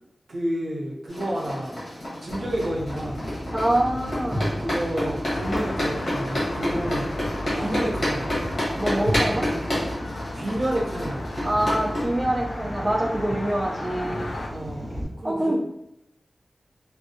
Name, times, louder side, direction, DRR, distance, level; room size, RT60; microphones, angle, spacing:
voice 1, 0.3-1.8 2.2-3.3 4.6-7.0 7.6-8.3 10.3-11.3 14.5-15.6, right 1 dB, 70° right, -3 dB, 0.8 m, -30 dB
sound 1, 1.1-12.0, left 1 dB, 50° left, 1.4 m, -30 dB
sound 2, 2.3-15.0, equal, 5° left, 1.1 m, -34 dB
voice 2, 3.5-4.5 7.5-7.8 8.8-9.5 11.4-14.2 15.2-15.6, right 1 dB, 20° right, -2 dB, 0.4 m, -25 dB
sound 3, 5.3-14.5, left 2 dB, 90° left, 0.4 m, -37 dB
3.5 x 2.3 x 2.7 m, 0.81 s
wide cardioid pair, 100°, 0 cm